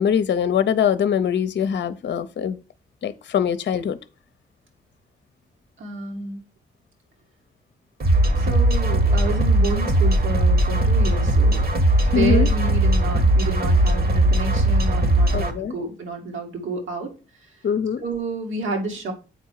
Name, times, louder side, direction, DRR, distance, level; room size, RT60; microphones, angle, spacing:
voice 1, 0.0-2.6 3.0-4.0 12.1-12.5 15.3-15.7 17.6-18.0, left 8 dB, 60° left, 0.6 m, -22 dB
voice 2, 5.8-6.4 8.4-11.7 12.0-17.1 18.0-19.1, right 3 dB, 75° right, 2.1 m, -30 dB
sound 1, 8.0-15.5, right 1 dB, 50° right, 1.5 m, -19 dB
8.0 x 4.5 x 4.6 m
hypercardioid pair, 40°, 21 cm